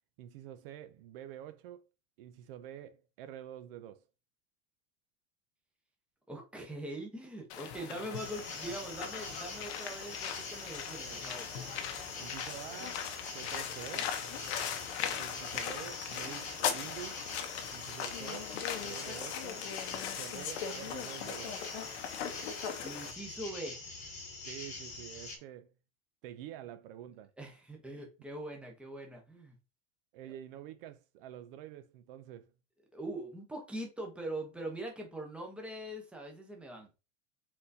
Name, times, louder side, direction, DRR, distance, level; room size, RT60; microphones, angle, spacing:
voice 1, 0.2-1.8 2.2-4.0 11.1-11.3 12.2-13.1 13.3-14.2 15.2-17.3 17.7-18.5 18.8-21.6 24.5-25.7 26.2-27.3 30.1-32.5, right 11 dB, 55° right, 0.5 m, -47 dB
voice 2, 6.3-11.5 15.0-15.2 22.8-23.8 27.4-29.5 30.2-30.3 32.9-36.9, right 1 dB, 5° right, 0.7 m, -42 dB
sound 1, 7.5-23.1, left 8 dB, 75° left, 0.9 m, -39 dB
sound 2, 8.1-25.4, left 3 dB, 20° left, 1.1 m, -45 dB
4.3 x 3.8 x 2.7 m
supercardioid pair, 170°, 33 cm